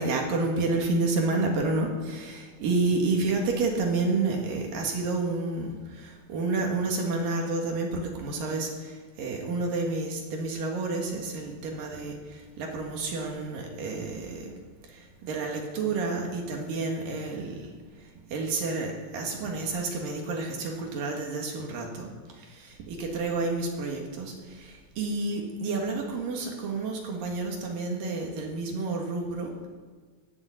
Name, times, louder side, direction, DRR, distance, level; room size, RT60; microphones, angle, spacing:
voice 1, 0.0-14.5 14.8-29.7, right 3 dB, 60° right, 1 dB, 3.2 m, -30 dB
18.5 x 7.0 x 7.8 m, 1.5 s
omnidirectional pair, 4.9 m